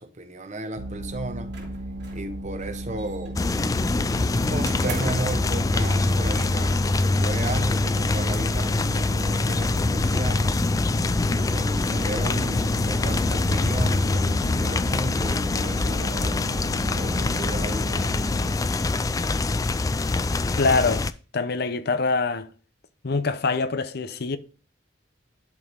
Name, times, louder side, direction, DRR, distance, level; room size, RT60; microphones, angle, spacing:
voice 1, 0.0-1.6 2.1-3.4 4.5-10.7 11.3-16.5 16.9-18.3, right 2 dB, 40° right, 1.0 m, -34 dB
sound 1, 0.8-18.6, right 1 dB, 85° right, 0.8 m, -36 dB
sound 2, 1.5-2.3 2.6-3.5 4.6-5.4, right 3 dB, 65° right, 3.0 m, -38 dB
sound 3, 3.4-21.1, left 3 dB, 20° left, 0.3 m, -24 dB
voice 2, 20.6-21.1 21.3-22.5 23.0-24.4, left 4 dB, 60° left, 0.7 m, -24 dB
11.0 x 4.9 x 3.6 m
head